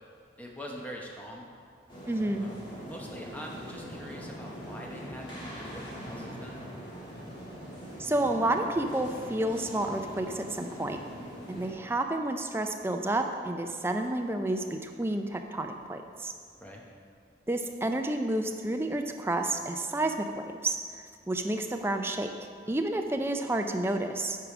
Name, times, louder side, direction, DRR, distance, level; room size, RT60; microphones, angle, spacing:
voice 1, 0.4-1.5 2.4-6.6 16.6-16.8, equal, 10° left, -1 dB, 0.8 m, -44 dB
sound 1, 1.9-11.7, equal, 25° left, 1.7 m, -42 dB
voice 2, 2.1-2.5 8.0-11.0 11.5-16.3 17.5-20.8 21.3-22.3 22.7-24.4, right 1 dB, 15° right, 5 dB, 0.4 m, -30 dB
8.5 x 4.9 x 4.9 m, 2.1 s
head